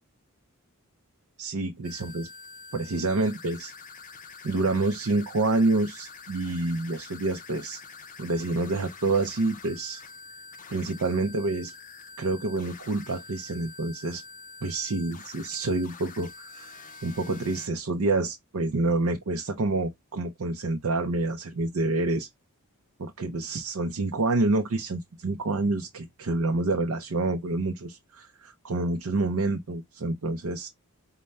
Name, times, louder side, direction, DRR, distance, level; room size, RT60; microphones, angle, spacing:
voice 1, 1.4-2.3 2.7-3.7 4.4-7.8 8.2-10.0 10.7-11.7 12.2-14.2 14.6-16.7 17.0-22.3 23.0-30.7, right 2 dB, 70° right, 0.6 m, -28 dB
sound 1, 1.8-17.7, left 4 dB, 35° left, 0.5 m, -46 dB
5.3 x 2.2 x 3.2 m
head